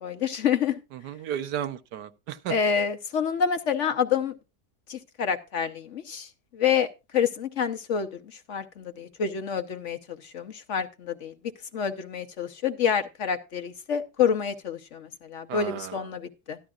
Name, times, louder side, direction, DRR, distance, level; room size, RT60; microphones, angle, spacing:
voice 1, 0.0-0.8 2.5-4.3 4.9-6.9 7.1-11.3 11.7-16.6, left 7 dB, 55° left, 1.0 m, -28 dB
voice 2, 0.9-2.6 15.5-16.0, right 10 dB, 80° right, 1.4 m, -34 dB
13.5 x 11.5 x 2.4 m
omnidirectional pair, 1.7 m